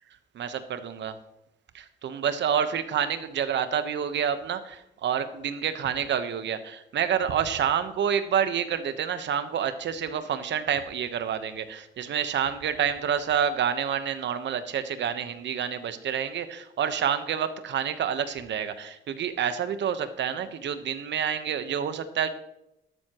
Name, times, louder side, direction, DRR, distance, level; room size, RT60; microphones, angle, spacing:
voice 1, 0.3-1.2 1.7-22.3, right 8 dB, 65° right, 11 dB, 1.1 m, -28 dB
12.5 x 12.0 x 3.0 m, 0.85 s
cardioid pair, 90°, 20 cm